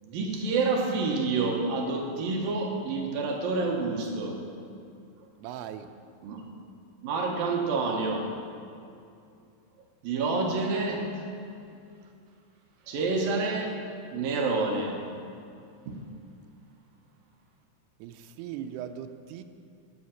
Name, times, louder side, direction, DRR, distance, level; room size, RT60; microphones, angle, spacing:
voice 1, 0.0-4.4 6.2-6.4 7.0-8.3 10.0-11.3 12.9-13.8 14.1-15.0 15.9-16.0, right 3 dB, 70° right, 0 dB, 2.8 m, -28 dB
voice 2, 5.4-5.9 18.0-19.4, right 9 dB, 85° right, 7 dB, 2.7 m, -39 dB
10.5 x 9.6 x 7.1 m, 2.5 s
omnidirectional pair, 4.6 m